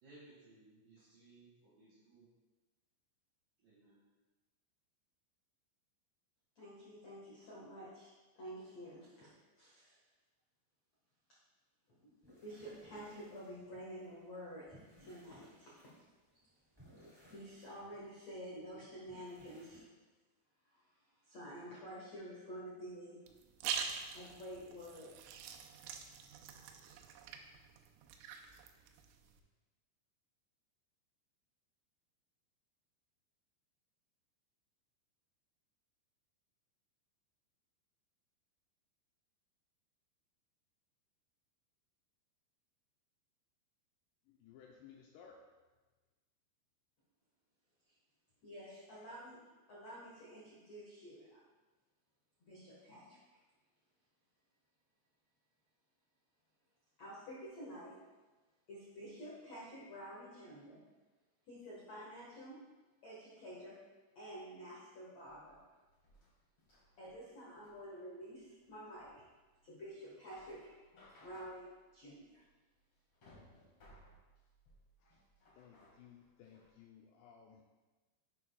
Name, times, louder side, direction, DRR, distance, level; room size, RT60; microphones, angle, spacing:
voice 1, 0.0-2.3 3.6-4.0, right 2 dB, 55° right, -9 dB, 3.0 m, -61 dB
voice 2, 6.5-10.0 11.9-12.2 12.4-15.7 17.3-19.8 20.6-23.2 24.1-25.1 47.9-48.0 48.4-49.4 49.7-51.4 52.4-53.2 57.0-58.0 58.7-60.8 61.5-62.6 63.0-63.8 64.1-65.6 67.0-69.2 69.6-70.7 71.2-72.4, equal, 75° left, -7 dB, 1.5 m, -50 dB
sound 1, 12.2-19.8, equal, 20° right, 0.6 m, -63 dB
sound 2, 23.3-29.4, right 7 dB, 90° right, 3.2 m, -45 dB
voice 3, 44.3-45.5 48.9-49.1 75.0-75.2 75.6-77.6, left 7 dB, 90° left, 0 dB, 2.4 m, -59 dB
sound 3, 65.2-76.8, left 1 dB, 50° left, 1.8 m, -65 dB
11.0 x 7.4 x 2.3 m, 1.2 s
omnidirectional pair, 5.5 m